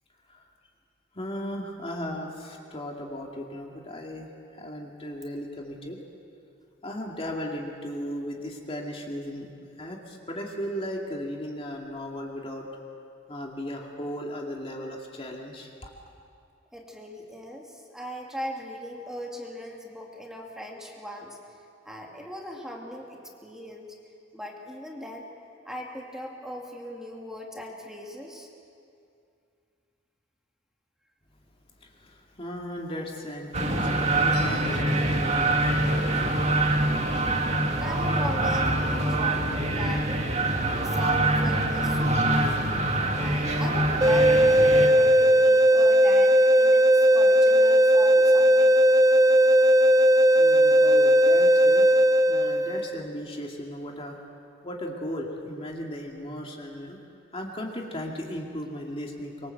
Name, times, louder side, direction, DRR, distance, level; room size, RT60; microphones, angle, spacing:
voice 1, 1.1-4.3 4.6-6.0 6.8-9.5 9.8-12.7 13.3-15.9 31.8-36.3 38.9-39.2 39.5-39.6 50.4-51.9 52.3-54.2 54.6-57.0 57.3-59.5, equal, 30° left, 0 dB, 2.4 m, -36 dB
voice 2, 16.7-21.4 21.8-23.9 24.3-25.2 25.6-28.5 37.8-40.3 40.7-48.8, equal, 5° right, -1 dB, 2.4 m, -39 dB
sound 1, 33.5-44.9, right 2 dB, 35° right, 2.2 m, -25 dB
sound 2, 44.0-53.0, right 1 dB, 20° right, 0.6 m, -18 dB
25.0 x 23.5 x 7.9 m, 2.5 s
head